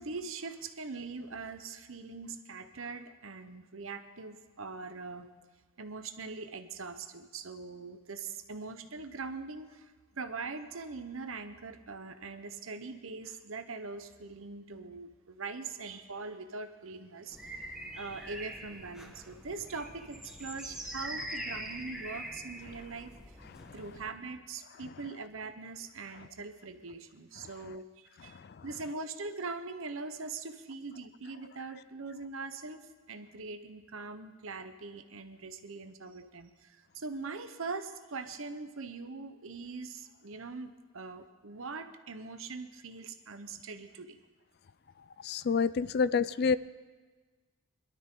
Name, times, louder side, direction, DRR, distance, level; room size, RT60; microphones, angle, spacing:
voice 1, 0.0-5.3 5.8-17.6 17.9-23.1 23.7-44.2, right 4 dB, 70° right, 9 dB, 0.9 m, -42 dB
sound 1, 17.3-24.1, right 1 dB, 5° right, 1.1 m, -43 dB
voice 2, 45.2-46.6, left 5 dB, 50° left, 17 dB, 0.3 m, -27 dB
21.0 x 12.5 x 3.8 m, 1.4 s
head